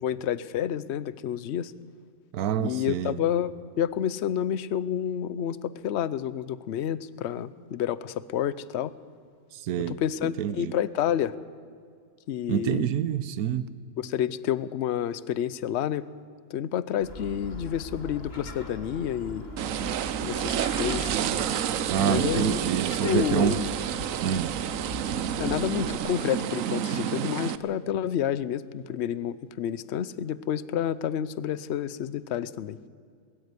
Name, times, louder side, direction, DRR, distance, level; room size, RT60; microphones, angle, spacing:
voice 1, 0.0-1.7 2.6-8.9 9.9-11.3 12.3-12.8 14.0-16.0 16.5-19.4 20.2-21.1 22.0-22.6 23.0-23.6 25.4-32.8, left 10 dB, 60° left, 17 dB, 0.9 m, -29 dB
voice 2, 2.3-3.2 9.5-10.7 12.5-13.7 21.9-23.6 24.2-24.6, right 9 dB, 85° right, 15 dB, 1.3 m, -27 dB
Gull seagull, 17.0-25.9, left 1 dB, 40° left, 2.6 m, -40 dB
sound 1, 19.6-27.6, right 10 dB, 70° right, 1.1 m, -29 dB
21.0 x 13.5 x 9.7 m, 2.1 s
omnidirectional pair, 1.5 m